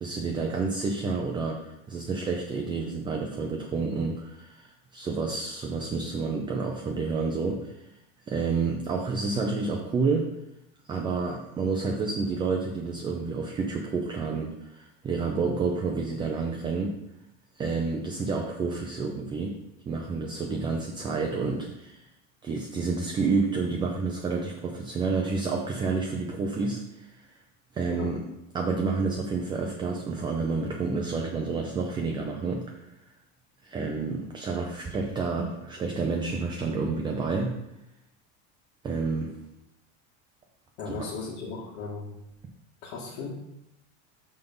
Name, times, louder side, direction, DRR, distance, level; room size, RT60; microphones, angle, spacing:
voice 1, 0.0-7.9 8.3-10.3 10.9-17.0 17.6-19.6 19.9-22.0 22.4-27.3 27.7-28.2 28.5-32.9 33.6-37.5 38.8-39.3 40.9-41.1, right 4 dB, 10° right, 1 dB, 0.4 m, -29 dB
voice 2, 40.8-42.2 42.8-43.3, left 4 dB, 70° left, -5 dB, 1.9 m, -36 dB
5.8 x 5.3 x 5.3 m, 0.87 s
supercardioid pair, 150°, 39 cm